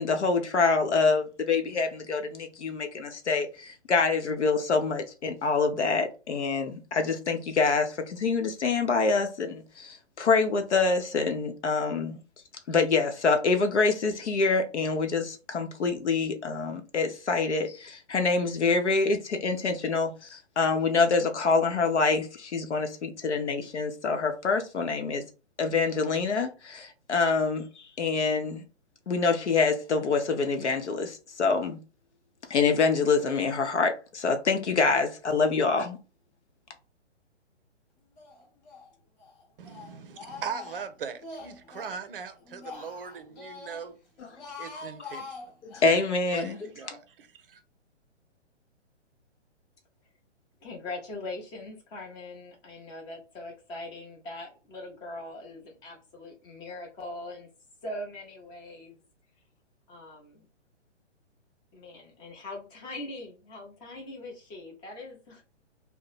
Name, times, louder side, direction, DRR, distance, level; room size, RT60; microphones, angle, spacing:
voice 1, 0.0-12.2 12.7-25.2 25.6-28.6 29.1-31.8 32.5-36.0 44.2-44.3 45.6-46.7, left 4 dB, 70° left, 0.9 m, -26 dB
Speech, 38.2-38.9 39.2-42.0 42.4-43.9 44.2-46.0, left 4 dB, 40° left, 1.0 m, -44 dB
voice 2, 39.6-44.0 44.6-45.5 46.3-47.6, right 6 dB, 50° right, 0.5 m, -40 dB
voice 3, 50.6-57.5 57.8-59.0 59.9-60.5 61.7-65.4, left 2 dB, 10° left, 0.6 m, -41 dB
2.8 x 2.1 x 3.9 m
figure-of-eight pair, 130°, 35 cm